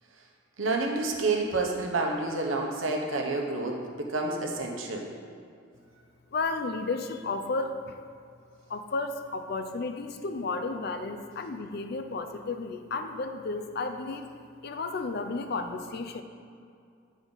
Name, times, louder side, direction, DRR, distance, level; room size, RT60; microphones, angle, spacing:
voice 1, 0.6-5.1, right 3 dB, 80° right, 1 dB, 1.0 m, -29 dB
voice 2, 6.3-8.0 8.7-14.3 14.6-16.2, left 3 dB, 55° left, 7 dB, 0.5 m, -33 dB
9.0 x 5.1 x 4.0 m, 2.3 s
head